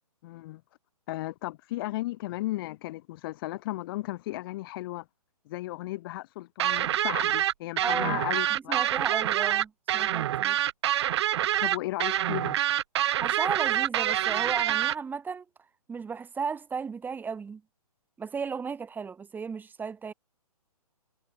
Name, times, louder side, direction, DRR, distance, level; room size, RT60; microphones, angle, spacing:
voice 1, 0.2-0.6 1.1-5.1 5.5-8.8 11.6-12.6, left 17 dB, 35° left, 3.7 m, -35 dB
sound 1, 6.6-14.9, right 12 dB, 45° right, 1.5 m, -26 dB
voice 2, 7.8-8.2 8.5-10.6 13.2-15.4 15.9-17.6 18.2-20.1, right 5 dB, 10° right, 6.4 m, -34 dB
figure-of-eight pair, 135°, 20 cm